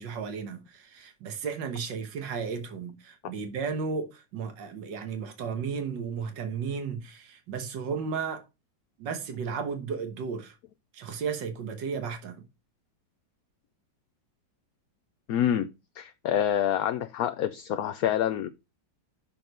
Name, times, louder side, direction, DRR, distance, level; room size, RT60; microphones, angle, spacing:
voice 1, 0.0-8.4 9.0-10.5 10.9-12.4, right 6 dB, 85° right, 1.8 m, -34 dB
voice 2, 15.3-15.7 16.0-18.5, left 10 dB, 70° left, 0.9 m, -27 dB
6.1 x 4.9 x 5.2 m
omnidirectional pair, 1.9 m